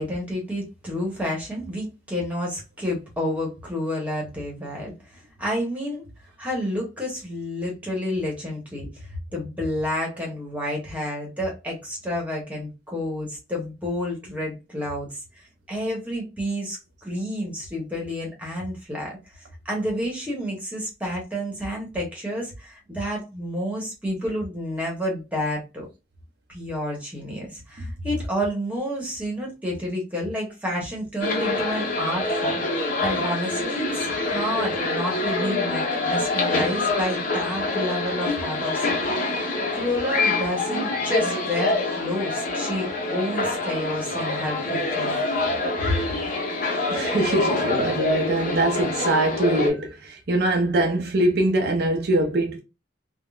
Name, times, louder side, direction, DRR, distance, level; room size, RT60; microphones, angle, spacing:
voice 1, 0.0-6.0 6.4-25.9 26.5-45.2 45.8-45.9, equal, 5° right, 1.0 m, -30 dB
sound 1, 31.2-49.7, left 2 dB, 45° left, 0.9 m, -26 dB
voice 2, 46.9-52.6, right 1 dB, 55° right, 0.5 m, -23 dB
3.6 x 2.0 x 2.3 m
head